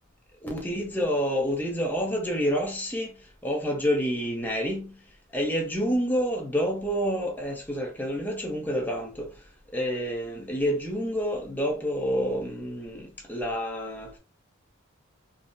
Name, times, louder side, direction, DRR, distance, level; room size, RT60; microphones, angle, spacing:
voice 1, 0.4-3.2 3.4-5.0 5.3-9.3 9.7-14.2, equal, 10° left, 0.7 m, -28 dB
3.9 x 2.0 x 2.5 m
head